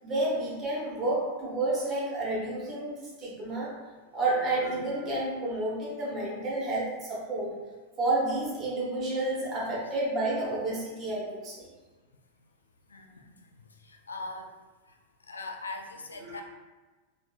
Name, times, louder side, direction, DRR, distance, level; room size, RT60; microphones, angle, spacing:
voice 1, 0.0-3.8 4.1-7.6 8.0-11.7 16.2-16.4, right 2 dB, 30° right, -5 dB, 1.1 m, -30 dB
voice 2, 12.9-13.3 13.8-14.5 15.3-16.4, left 3 dB, 75° left, 4 dB, 0.4 m, -40 dB
3.1 x 3.0 x 2.4 m, 1.3 s
figure-of-eight pair, 90°, 0 cm